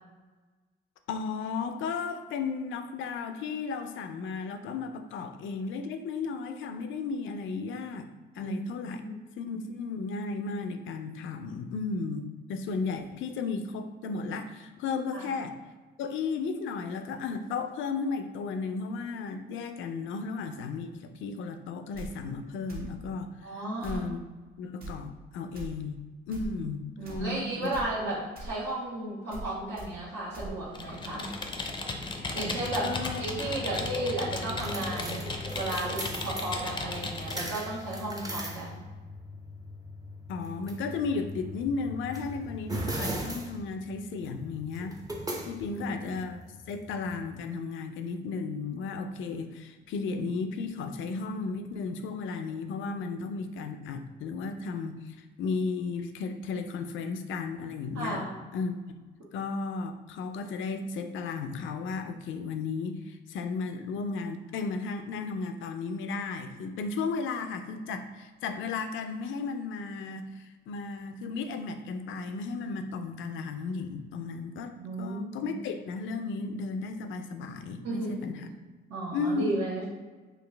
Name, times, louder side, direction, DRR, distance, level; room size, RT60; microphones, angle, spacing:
voice 1, 1.1-8.1 8.3-9.0 9.4-15.6 16.0-24.2 24.6-26.0 26.3-27.7 32.8-33.4 40.3-45.0 45.5-46.4 46.7-58.2 58.5-59.0 59.3-78.5 79.1-79.6, left 4 dB, 75° left, 7 dB, 0.4 m, -34 dB
sound 1, 21.9-22.1 22.7-22.9 23.8-24.0 24.8-24.9 25.5-25.7 26.3-26.5 27.0-27.3 27.7-27.9 28.3-28.5 29.3-29.5 29.8-29.9 30.3-30.5, right 2 dB, 50° right, 0.9 m, -40 dB
voice 2, 23.4-24.0 27.0-31.3 32.3-32.9 33.2-38.8 45.6-46.0 57.9-58.4 74.8-75.5 77.8-78.3 78.9-79.8, right 1 dB, 70° right, -10 dB, 1.2 m, -34 dB
Computer keyboard, 30.7-37.5, left 3 dB, 25° left, 0.5 m, -36 dB
sound 2, 32.7-47.4, equal, 20° right, 0.6 m, -39 dB
4.1 x 2.5 x 3.2 m, 1.3 s
cardioid pair, 90°, 20 cm